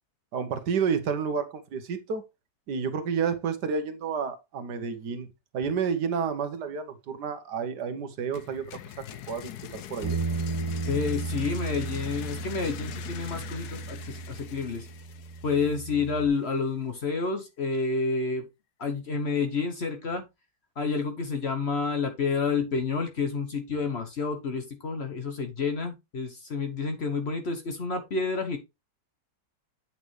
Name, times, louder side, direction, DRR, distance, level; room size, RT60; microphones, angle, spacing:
voice 1, 0.3-1.5 1.7-2.2 2.7-5.3 5.5-8.7 9.3-10.2, right 6 dB, 75° right, 1.6 m, -30 dB
sound 1, 8.3-16.1, left 11 dB, 70° left, 1.2 m, -43 dB
Bass guitar, 10.0-16.3, right 3 dB, 20° right, 0.9 m, -34 dB
voice 2, 10.9-14.9 15.4-18.4 18.8-20.2 20.8-28.6, left 4 dB, 45° left, 1.0 m, -29 dB
8.4 x 5.9 x 3.2 m
omnidirectional pair, 1.8 m